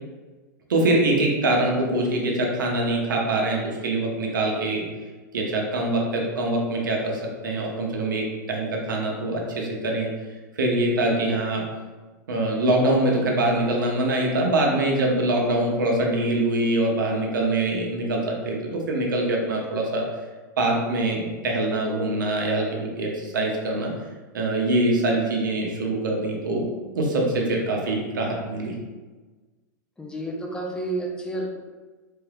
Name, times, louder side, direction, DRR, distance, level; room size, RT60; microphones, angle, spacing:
voice 1, 0.7-4.8 5.3-10.1 10.6-11.6 12.3-20.1 20.6-23.9 24.3-26.7 27.0-28.7, right 2 dB, 85° right, -1 dB, 0.9 m, -24 dB
voice 2, 30.0-31.5, right 2 dB, 10° left, 0 dB, 0.7 m, -30 dB
4.4 x 3.3 x 2.3 m, 1.3 s
hypercardioid pair, 115°, 10 cm